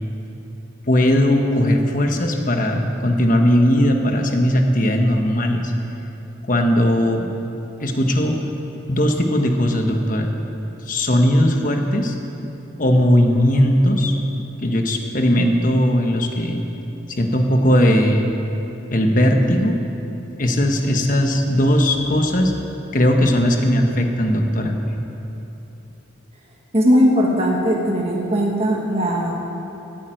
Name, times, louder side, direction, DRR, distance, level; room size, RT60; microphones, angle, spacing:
voice 1, 0.9-5.7 6.5-7.3 7.8-8.4 8.9-10.3 10.9-12.1 12.8-14.2 14.6-16.6 17.1-18.3 18.9-19.8 20.4-22.5 22.9-24.7, equal, 40° left, 4 dB, 1.2 m, -18 dB
voice 2, 26.7-29.4, equal, 30° right, -2 dB, 1.4 m, -18 dB
12.0 x 9.1 x 9.1 m, 3.0 s
head